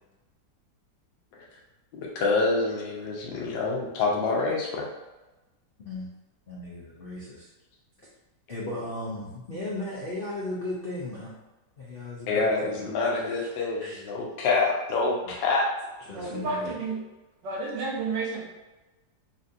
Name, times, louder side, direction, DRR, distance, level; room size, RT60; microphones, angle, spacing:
voice 1, 1.9-4.9 12.3-15.6 16.2-16.3, left 3 dB, 90° left, -1 dB, 1.4 m, -27 dB
voice 2, 6.5-7.5 8.5-11.3 11.8-12.7 13.1-13.4 13.8-14.0 15.2-15.3 16.0-16.7, left 1 dB, 75° left, -6 dB, 0.5 m, -36 dB
voice 3, 16.1-17.0 17.4-18.4, right 3 dB, 85° right, -2 dB, 1.5 m, -31 dB
4.1 x 2.5 x 2.6 m, 1.1 s
omnidirectional pair, 1.9 m